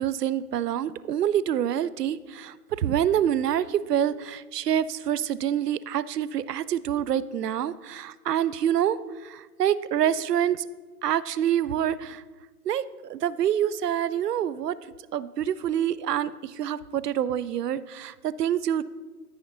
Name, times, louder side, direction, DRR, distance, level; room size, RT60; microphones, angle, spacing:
voice 1, 0.0-10.6 11.0-12.2 12.7-14.8 15.1-18.8, right 10 dB, 75° right, 18 dB, 0.6 m, -26 dB
13.5 x 5.7 x 2.6 m, 1.3 s
hypercardioid pair, 155°, 48 cm